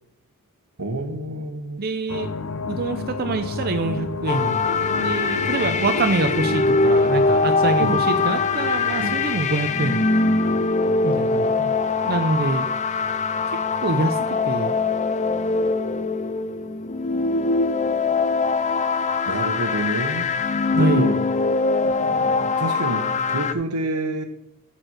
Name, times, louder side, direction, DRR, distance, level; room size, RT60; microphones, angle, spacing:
voice 1, 0.8-1.8 7.8-8.1 9.0-9.2 19.3-20.4 20.7-21.2 22.0-24.2, right 2 dB, 80° right, 6 dB, 1.3 m, -28 dB
voice 2, 1.8-2.3 2.7-4.6 5.0-10.1 11.0-11.7 12.0-12.7 13.8-14.7 20.8-21.1, right 3 dB, 45° right, 7 dB, 0.6 m, -25 dB
sound 1, 2.1-15.9 16.5-17.0, left 3 dB, 70° left, 0.7 m, -33 dB
sound 2, 4.3-23.5, left 3 dB, 30° left, 0.5 m, -22 dB
12.5 x 4.5 x 6.4 m, 0.81 s
head